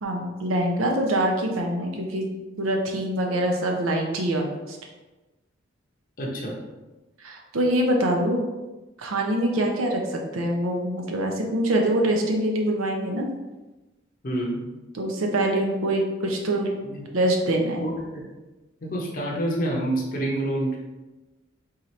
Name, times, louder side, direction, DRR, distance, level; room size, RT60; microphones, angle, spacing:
voice 1, 0.0-2.3 2.6-4.8 7.2-8.4 9.0-13.3 14.9-16.7 17.1-17.8, right 1 dB, 90° right, 1 dB, 0.6 m, -24 dB
voice 2, 6.2-6.6 14.2-14.6 16.8-17.0 17.8-18.2 18.8-20.8, right 1 dB, 40° left, -3 dB, 0.6 m, -27 dB
3.8 x 2.8 x 3.1 m, 1.1 s
head